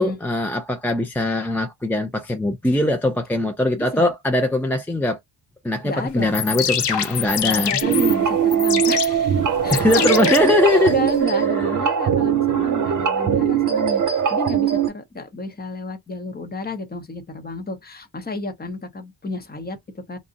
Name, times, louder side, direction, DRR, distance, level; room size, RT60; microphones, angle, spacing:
voice 1, 0.0-5.2 5.6-7.8 9.7-10.9 11.6-11.7, left 1 dB, 5° left, 0.3 m, -21 dB
voice 2, 3.8-4.1 5.8-6.3 7.4-20.2, left 2 dB, 25° left, 0.7 m, -31 dB
sound 1, 6.2-11.2, left 8 dB, 80° left, 0.8 m, -26 dB
sound 2, 7.8-14.9, right 8 dB, 45° right, 0.8 m, -20 dB
2.6 x 2.0 x 3.7 m
wide cardioid pair, 155°, 41 cm